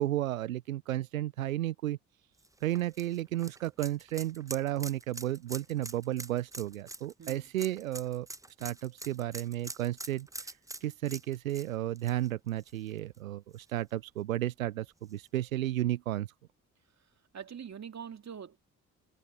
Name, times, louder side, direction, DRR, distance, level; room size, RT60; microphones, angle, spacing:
voice 1, 0.0-2.0 2.6-8.3 8.6-16.3, right 14 dB, 90° right, 0.6 m, -33 dB
sound 1, 2.4-13.2 13.5-13.6 15.1-15.2, right 2 dB, 10° right, 0.8 m, -45 dB
voice 2, 17.0-18.6, right 7 dB, 40° right, 2.8 m, -44 dB
figure-of-eight pair, 45°, 39 cm